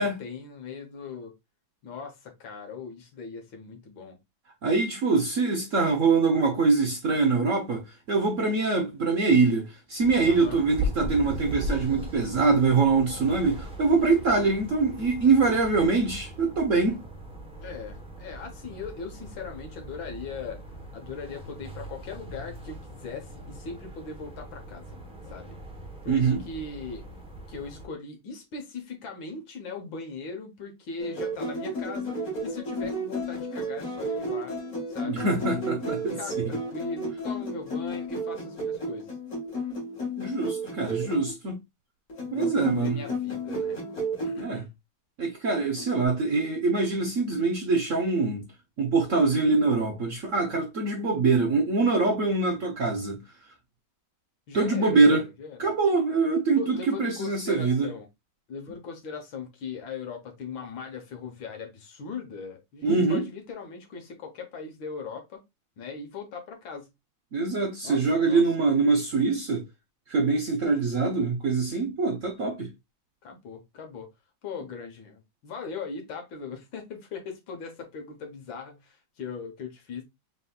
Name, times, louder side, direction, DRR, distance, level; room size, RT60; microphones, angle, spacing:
voice 1, 0.0-1.3 1.8-4.2 10.2-10.6 17.6-20.6 20.9-25.0 25.3-25.6 26.0-27.0 27.5-32.2 32.4-34.6 34.9-35.3 36.1-39.2 42.2-43.8 44.2-44.7 54.5-55.7 56.6-58.1 58.5-65.4 65.8-66.9 67.8-68.4 73.2-74.1 74.4-80.0, left 5 dB, 75° left, 1.9 m, -39 dB
voice 2, 4.6-17.0 26.1-26.4 35.0-36.5 40.2-41.6 42.3-43.0 44.4-44.6 45.2-48.5 48.8-53.2 54.5-55.2 55.6-57.9 62.8-63.2 67.3-69.6 70.1-72.7, right 4 dB, 60° right, 0.8 m, -24 dB
sound 1, 10.0-27.9, equal, 5° right, 0.4 m, -39 dB
sound 2, 31.0-41.3 42.1-44.4 45.5-46.1, equal, 45° left, 2.2 m, -32 dB
4.1 x 4.0 x 2.3 m
omnidirectional pair, 2.2 m